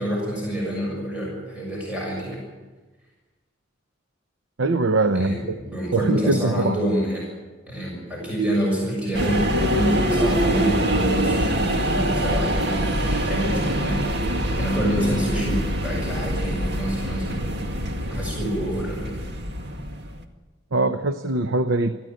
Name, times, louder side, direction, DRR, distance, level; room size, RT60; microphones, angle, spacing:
voice 1, 0.0-2.4 5.1-7.3 7.7-14.2 14.6-17.4 18.1-19.1, equal, 5° right, -3 dB, 7.0 m, -27 dB
voice 2, 4.6-5.6 5.9-6.8 20.7-22.0, right 2 dB, 85° right, 9 dB, 0.9 m, -22 dB
sound 1, 9.1-20.2, equal, 60° right, 2.0 m, -24 dB
23.5 x 15.0 x 9.2 m, 1.3 s
head